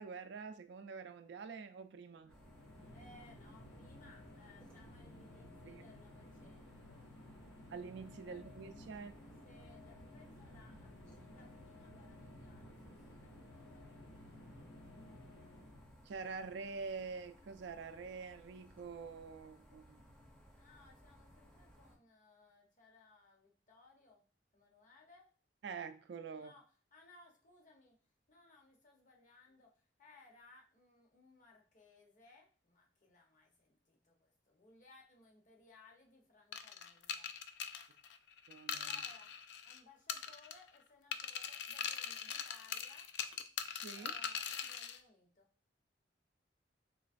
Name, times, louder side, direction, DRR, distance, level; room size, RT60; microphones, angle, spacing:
voice 1, 0.0-2.3 5.6-5.8 7.7-9.1 16.1-20.0 25.6-26.5 38.5-39.0 43.7-44.1, right 5 dB, 65° right, 0.3 m, -46 dB
sound 1, 2.2-16.1, left 1 dB, 85° left, 0.8 m, -56 dB
sound 2, 2.3-22.0, equal, 5° left, 0.6 m, -62 dB
voice 2, 2.9-7.1 8.2-8.4 8.9-14.5 20.5-24.2 24.5-25.3 26.3-26.7 26.9-28.0 28.3-37.3 38.8-39.4 39.6-43.1 43.9-45.5, left 3 dB, 45° left, 0.9 m, -64 dB
sound 3, 36.5-39.8 40.1-40.8 41.1-45.0, left 7 dB, 65° left, 0.3 m, -42 dB
3.8 x 3.1 x 2.5 m
head